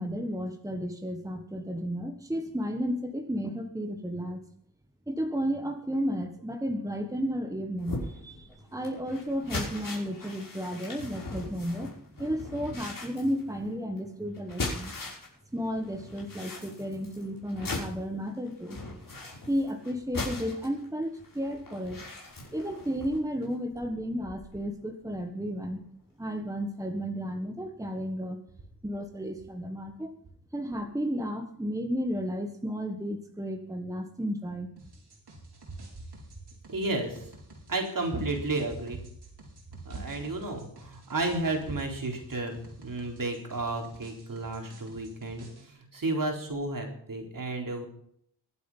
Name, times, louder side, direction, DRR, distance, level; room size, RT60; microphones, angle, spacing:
voice 1, 0.0-4.4 5.1-14.9 15.5-18.8 19.5-22.0 22.5-25.8 26.2-28.4 28.8-30.1 30.5-34.7, equal, 10° right, 5 dB, 1.5 m, -33 dB
sound 1, 7.8-15.4 15.7-24.7 25.0-25.2 25.6-25.7, left 2 dB, 50° left, 5.6 m, -40 dB
sound 2, 34.8-45.7, right 1 dB, 75° right, 5.3 m, -52 dB
voice 2, 36.7-37.3 37.7-39.0 39.9-47.9, right 2 dB, 55° right, 2 dB, 3.9 m, -32 dB
23.0 x 8.4 x 5.6 m, 0.68 s
wide cardioid pair, 100°, 40 cm